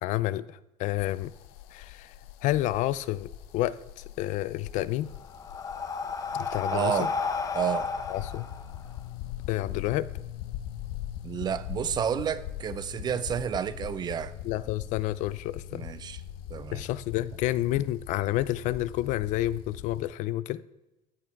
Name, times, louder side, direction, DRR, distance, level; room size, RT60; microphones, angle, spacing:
voice 1, 0.0-1.3 1.7-2.1 2.4-3.3 3.5-5.1 6.3-7.1 8.1-8.5 9.5-10.1 14.4-15.9 16.7-20.6, left 15 dB, 55° left, 18 dB, 0.5 m, -29 dB
sound 1, 1.0-20.0, left 12 dB, 80° left, 0.8 m, -42 dB
Breathing, 4.7-9.5, left 5 dB, 20° left, 0.8 m, -33 dB
voice 2, 6.7-7.1 7.5-7.9 11.2-14.4 15.7-16.2 16.5-16.8, right 8 dB, 25° right, 15 dB, 0.5 m, -30 dB
14.0 x 8.6 x 4.6 m, 0.98 s
cardioid pair, 160°, 15 cm